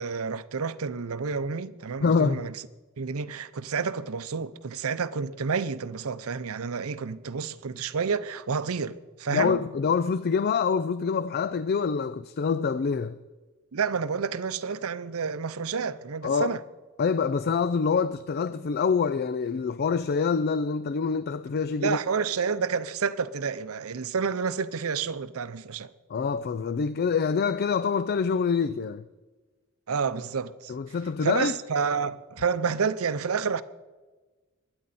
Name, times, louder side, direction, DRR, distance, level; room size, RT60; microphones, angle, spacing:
voice 1, 0.0-2.5 3.0-9.6 13.7-16.6 21.8-25.9 29.9-31.0 31.2-33.6, right 5 dB, 70° right, 0.6 m, -29 dB
voice 2, 2.0-2.4 9.3-13.2 16.2-16.5 17.0-22.0 26.1-29.0 30.7-31.5, left 5 dB, 45° left, 0.4 m, -26 dB
21.5 x 9.7 x 4.2 m
head